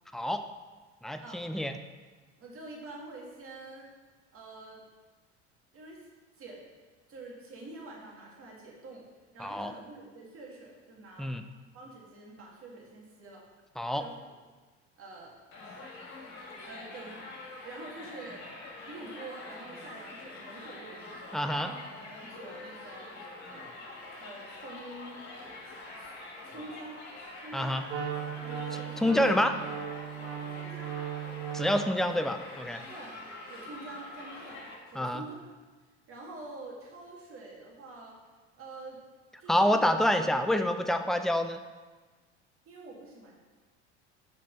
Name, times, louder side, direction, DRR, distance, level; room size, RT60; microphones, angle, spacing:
voice 1, 0.1-0.5 1.0-1.7 9.4-9.7 11.2-11.4 13.8-14.1 21.3-21.7 27.5-27.8 29.0-29.6 31.5-32.8 35.0-35.2 39.5-41.6, left 1 dB, ahead, 8 dB, 0.3 m, -27 dB
voice 2, 2.4-3.9 4.3-4.8 5.7-6.1 6.4-6.6 7.1-9.1 9.3-11.3 11.7-13.4 13.9-14.2 15.0-15.3 16.6-17.3 17.6-18.4 18.8-23.8 24.2-25.2 26.0-26.1 26.4-27.0 27.4-27.9 28.4-29.3 30.5-31.0 32.9-33.1 33.5-35.5 36.1-38.2 38.6-39.0 39.4-39.9 42.7-43.3, right 2 dB, 40° right, -2 dB, 2.0 m, -46 dB
Crowd, 15.5-34.7, left 2 dB, 50° left, 2.1 m, -45 dB
Wind instrument woodwind instrument, 27.9-31.9, right 9 dB, 85° right, 1.4 m, -37 dB
5.8 x 4.4 x 5.3 m, 1.3 s
hypercardioid pair, 75°, 34 cm